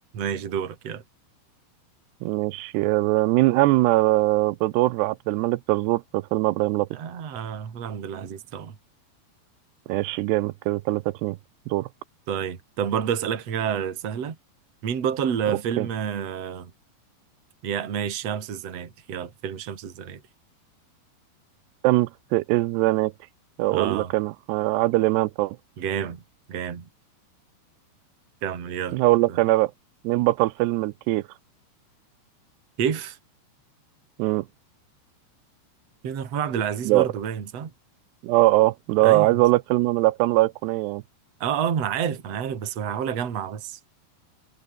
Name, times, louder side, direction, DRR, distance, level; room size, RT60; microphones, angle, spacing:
voice 1, 0.1-1.0 6.9-8.8 12.3-14.4 14.8-16.7 17.6-20.2 23.7-24.1 25.8-26.2 26.5-26.9 28.4-29.0 29.3-29.4 32.8-33.2 36.0-37.7 39.0-39.4 41.4-43.8, right 8 dB, 40° right, 3.5 m, -29 dB
voice 2, 2.2-6.9 9.9-11.4 11.7-11.9 15.8-15.9 21.8-23.1 23.6-25.6 28.9-29.7 30.0-31.2 34.2-34.4 36.9-37.1 38.2-41.0, right 19 dB, 80° right, 2.7 m, -22 dB
omnidirectional pair, 5.1 m